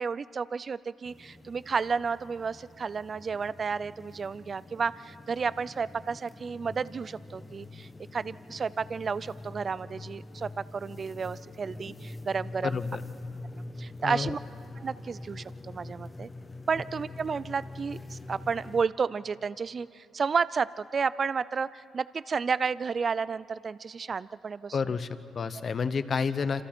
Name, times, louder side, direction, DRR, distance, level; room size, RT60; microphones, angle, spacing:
voice 1, 0.0-12.8 13.5-14.4 14.8-16.3 16.7-24.9, right 5 dB, 40° right, 18 dB, 0.5 m, -32 dB
sound 1, 1.0-18.8, left 2 dB, 20° left, 1.0 m, -44 dB
voice 2, 12.6-13.0 14.0-14.3 24.7-26.6, left 5 dB, 45° left, 12 dB, 0.9 m, -30 dB
27.0 x 26.5 x 4.5 m, 2.7 s
cardioid pair, 90°, 0 cm